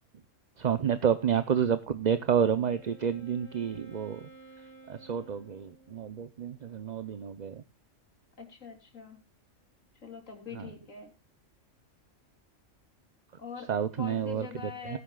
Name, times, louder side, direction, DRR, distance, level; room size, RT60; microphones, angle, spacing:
voice 1, 0.6-4.2 4.9-7.6 10.6-10.7 13.7-14.5 14.9-15.0, right 8 dB, 40° right, 12 dB, 0.7 m, -29 dB
Wind instrument woodwind instrument, 1.9-6.2, right 3 dB, 75° right, 5.9 m, -54 dB
voice 2, 8.4-9.2 10.0-11.1 13.4-13.7 14.0-15.0, left 6 dB, 85° left, 4 dB, 3.7 m, -43 dB
19.5 x 9.9 x 2.3 m, 0.25 s
omnidirectional pair, 1.3 m